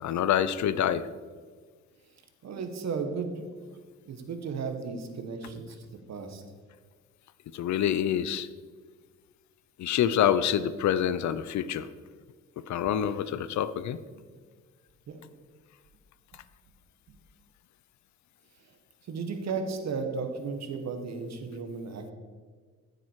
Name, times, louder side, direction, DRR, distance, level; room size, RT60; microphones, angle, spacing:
voice 1, 0.0-1.1 7.5-8.5 9.8-11.9 12.6-14.0, left 9 dB, 70° left, 15 dB, 0.7 m, -26 dB
voice 2, 2.4-3.8 4.1-6.4 15.1-15.2 17.1-17.2 18.6-18.8 19.0-22.1, right 4 dB, 60° right, 6 dB, 1.7 m, -35 dB
14.5 x 7.7 x 4.8 m, 1.5 s
cardioid pair, 90°, 30 cm